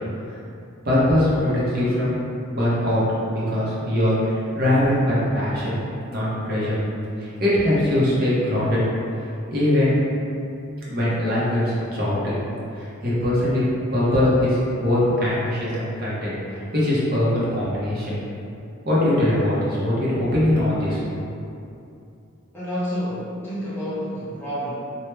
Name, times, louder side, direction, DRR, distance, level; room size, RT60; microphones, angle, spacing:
voice 1, 0.8-2.1 2.5-3.0 3.3-5.7 6.1-6.8 7.2-8.9 9.5-10.0 10.9-12.3 12.8-13.6 13.9-16.3 16.7-18.2 18.8-21.1, left 1 dB, 50° right, -8 dB, 0.8 m, -21 dB
voice 2, 22.5-24.7, equal, 10° left, -11 dB, 0.7 m, -29 dB
3.2 x 2.3 x 3.2 m, 2.6 s
head